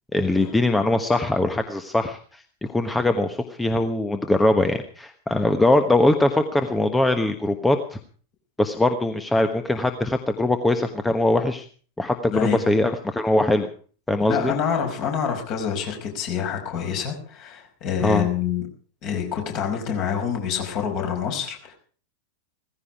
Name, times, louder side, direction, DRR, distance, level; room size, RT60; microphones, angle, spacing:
voice 1, 0.1-2.4 2.7-8.0 8.6-11.7 12.0-13.7 14.1-14.5 18.0-18.3, left 2 dB, 10° left, 8 dB, 1.2 m, -21 dB
voice 2, 12.3-12.6 14.3-18.6 19.0-21.7, left 8 dB, 40° left, 3 dB, 5.2 m, -26 dB
17.0 x 15.5 x 4.8 m, 0.43 s
figure-of-eight pair, 90°, 0 cm